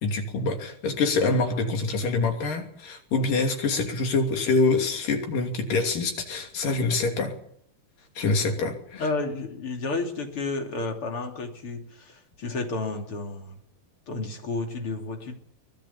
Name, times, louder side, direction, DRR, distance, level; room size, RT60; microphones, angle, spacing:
voice 1, 0.0-7.3 8.2-9.1, left 3 dB, 75° left, 4 dB, 4.5 m, -25 dB
voice 2, 8.9-13.6 14.1-15.3, left 3 dB, 40° left, 3 dB, 3.6 m, -31 dB
23.5 x 18.0 x 7.2 m, 0.70 s
omnidirectional pair, 3.8 m